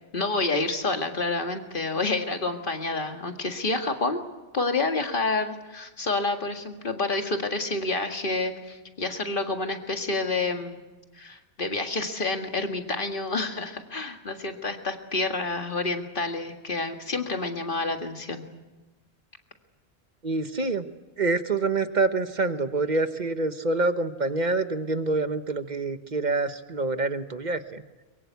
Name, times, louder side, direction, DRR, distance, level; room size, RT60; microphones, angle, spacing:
voice 1, 0.1-4.2 4.5-10.8 11.2-18.4, left 3 dB, 50° left, 5 dB, 2.1 m, -28 dB
voice 2, 20.2-20.9 21.2-27.8, right 3 dB, 45° right, 10 dB, 1.2 m, -26 dB
23.5 x 22.5 x 8.2 m, 1.1 s
omnidirectional pair, 1.1 m